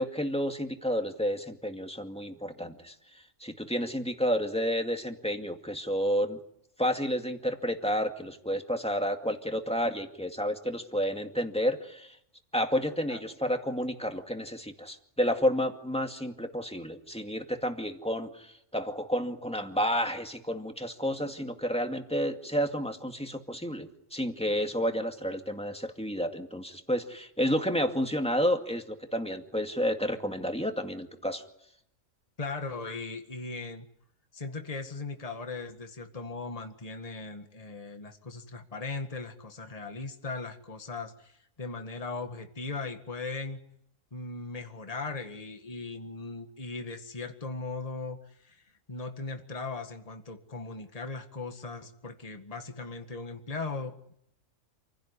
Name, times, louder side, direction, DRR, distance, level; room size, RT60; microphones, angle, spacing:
voice 1, 0.0-2.9 3.4-6.4 6.8-12.2 12.5-31.4, equal, 5° left, 4 dB, 2.2 m, -30 dB
voice 2, 32.4-33.9 34.3-43.6 44.1-54.1, left 3 dB, 30° left, 5 dB, 1.9 m, -38 dB
28.5 x 16.5 x 9.9 m, 0.74 s
omnidirectional pair, 1.4 m